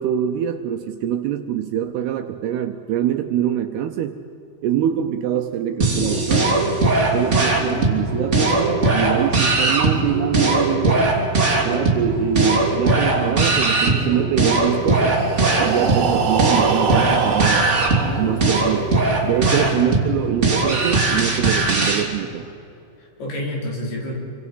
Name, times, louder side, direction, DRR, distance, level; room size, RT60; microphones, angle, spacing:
voice 1, 0.0-4.2 4.6-6.6 7.1-11.2 11.6-15.2 15.6-17.8 18.2-22.5, right 10 dB, 80° right, 7 dB, 2.4 m, -24 dB
sound 1, 5.8-22.0, right 2 dB, 20° right, 2.5 m, -20 dB
Breathing, 14.9-18.8, right 5 dB, 65° right, 1.3 m, -23 dB
voice 2, 19.4-20.1 23.0-24.2, left 1 dB, 70° left, -3 dB, 7.2 m, -28 dB
28.0 x 25.0 x 5.6 m, 2.9 s
omnidirectional pair, 5.4 m